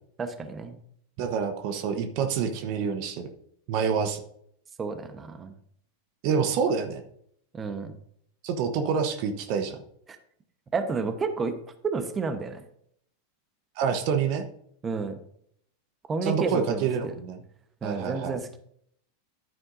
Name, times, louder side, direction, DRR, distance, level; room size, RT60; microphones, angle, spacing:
voice 1, 0.2-0.8 4.8-5.5 7.5-7.9 10.7-11.5 11.8-12.6 14.8-15.2 16.1-17.1 17.8-18.6, right 4 dB, 25° right, 8 dB, 1.1 m, -30 dB
voice 2, 1.2-3.3 3.7-4.2 6.2-7.0 8.4-9.8 13.8-14.5 16.2-17.4 17.8-18.4, right 6 dB, 55° right, 7 dB, 1.0 m, -27 dB
11.0 x 9.2 x 2.7 m, 0.68 s
hypercardioid pair, 95°, 0 cm